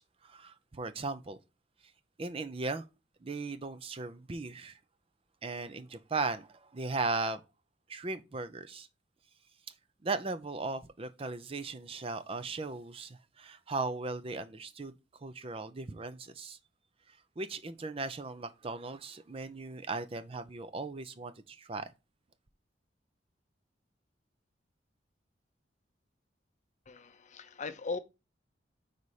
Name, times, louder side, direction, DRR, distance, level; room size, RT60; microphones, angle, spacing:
voice 1, 0.0-1.4 2.2-2.8 3.2-4.8 5.4-7.4 7.9-8.9 10.0-14.9 15.2-16.6 17.1-21.9, right 3 dB, 30° right, 0.5 m, -37 dB
voice 2, 26.9-28.0, left 4 dB, 40° left, 0.6 m, -39 dB
5.5 x 4.1 x 4.7 m
head